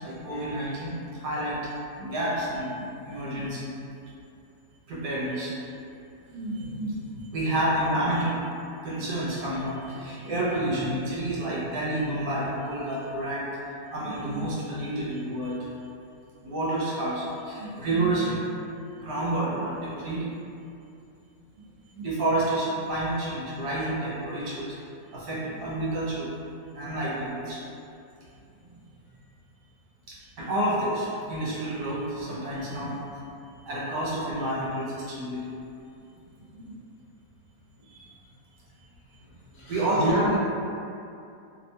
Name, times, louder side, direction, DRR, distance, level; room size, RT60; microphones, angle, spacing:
voice 1, 0.0-1.6 2.0-3.7 4.9-5.6 6.3-8.5 8.8-13.5 13.9-15.7 16.4-18.4 18.9-20.3 21.9-24.8 25.1-26.3 26.7-27.6 28.7-28.8 30.1-33.2 33.7-35.4 36.5-36.6 37.8-38.1 39.7-40.4, right 1 dB, 75° right, -7 dB, 1.2 m, -29 dB
voice 2, 39.5-40.4, equal, 60° left, -9 dB, 1.1 m, -27 dB
2.9 x 2.1 x 2.6 m, 2.6 s
omnidirectional pair, 1.9 m